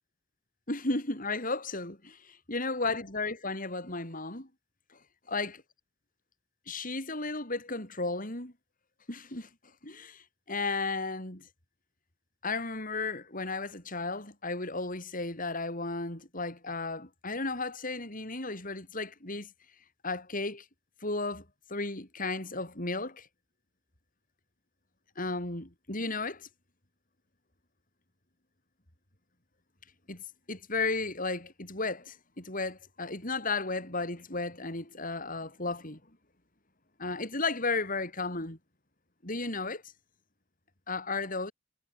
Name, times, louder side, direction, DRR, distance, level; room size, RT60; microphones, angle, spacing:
voice 1, 0.7-4.5 5.3-5.6 6.7-8.5 9.1-9.5 9.8-11.5 12.4-19.5 20.0-20.6 21.0-21.4 21.7-23.3 25.2-26.5 30.1-36.0 37.0-38.6 39.2-39.8 40.9-41.5, left 3 dB, 45° left, 7.8 m, -34 dB
head